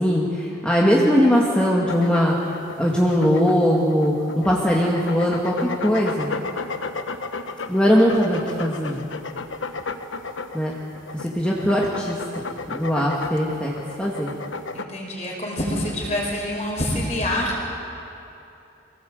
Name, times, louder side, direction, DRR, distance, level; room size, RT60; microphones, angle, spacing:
voice 1, 0.0-5.6 5.8-6.3 7.7-9.0 10.5-10.7 11.1-12.4 12.7-13.7 14.0-14.3, equal, 5° left, -4 dB, 1.9 m, -20 dB
sound 1, 1.9-14.8, left 4 dB, 85° left, 1.1 m, -33 dB
voice 2, 14.7-17.6, left 1 dB, 35° left, -2 dB, 5.4 m, -26 dB
25.5 x 18.0 x 7.9 m, 2.8 s
head